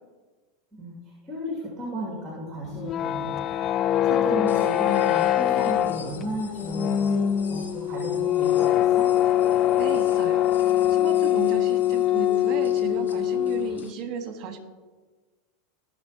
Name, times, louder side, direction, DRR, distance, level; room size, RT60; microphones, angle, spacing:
voice 1, 0.8-7.2 7.5-9.1, equal, 20° right, -4 dB, 2.4 m, -34 dB
sound 1, 2.7-13.9, left 12 dB, 40° left, 0.3 m, -23 dB
sound 2, 4.5-13.9, left 6 dB, 80° left, 1.4 m, -48 dB
voice 2, 9.8-10.4 10.9-14.6, right 6 dB, 45° right, 6 dB, 1.5 m, -34 dB
15.5 x 5.9 x 2.9 m, 1.3 s
hypercardioid pair, 90°, 0 cm